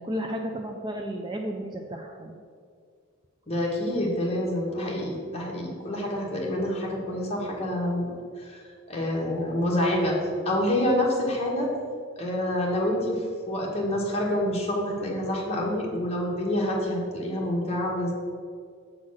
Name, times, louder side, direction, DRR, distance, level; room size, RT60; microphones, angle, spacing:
voice 1, 0.0-2.4, equal, 20° right, 2 dB, 0.4 m, -33 dB
voice 2, 3.5-8.0 8.4-8.6 8.9-10.2 10.4-11.7 12.2-18.1, left 1 dB, 30° left, -3 dB, 1.3 m, -27 dB
7.4 x 4.0 x 6.2 m, 2.1 s
head